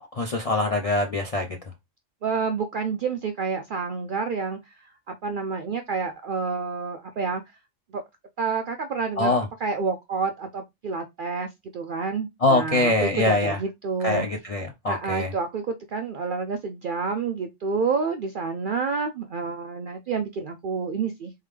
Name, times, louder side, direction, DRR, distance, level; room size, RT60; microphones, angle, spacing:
voice 1, 0.1-1.5 9.2-9.5 12.4-13.6 14.0-15.3, left 2 dB, 55° left, 0.4 m, -23 dB
voice 2, 2.2-7.6 7.9-8.0 8.4-14.3 14.9-21.3, right 5 dB, 65° right, 0.5 m, -29 dB
3.7 x 3.4 x 3.2 m
omnidirectional pair, 1.3 m